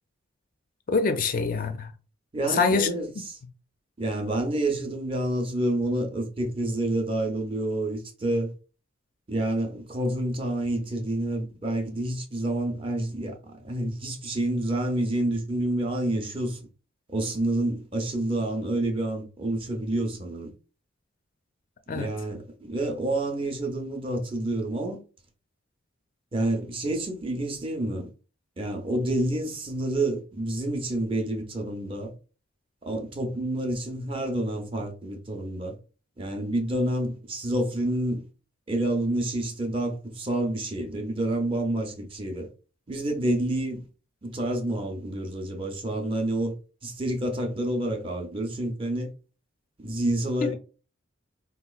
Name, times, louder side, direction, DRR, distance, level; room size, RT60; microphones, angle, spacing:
voice 1, 0.9-1.9 2.5-2.9 21.9-22.1 50.4-50.5, left 4 dB, 45° left, 0.4 m, -24 dB
voice 2, 2.3-3.4 4.0-8.5 9.3-13.4 13.6-16.6 17.1-20.5 21.9-25.0 26.3-28.1 28.6-32.1 32.8-35.7 36.2-38.2 38.7-42.5 42.9-43.9 44.2-46.6 46.8-49.1 49.8-50.5, right 1 dB, 25° right, 0.5 m, -28 dB
3.7 x 2.9 x 2.3 m
head